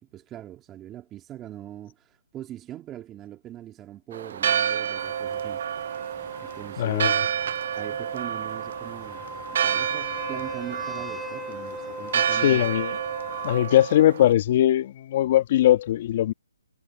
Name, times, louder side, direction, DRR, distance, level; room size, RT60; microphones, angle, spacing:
voice 1, 0.1-5.6 6.4-7.2 7.7-12.6, right 12 dB, 15° right, 2.8 m, -41 dB
Church bell, 4.1-14.3, right 8 dB, 50° right, 0.6 m, -29 dB
sound 1, 5.0-13.6, left 3 dB, 5° left, 4.5 m, -41 dB
voice 2, 6.8-7.2 12.3-13.0 13.4-16.3, left 12 dB, 40° left, 1.7 m, -20 dB
hypercardioid pair, 155°, 0 cm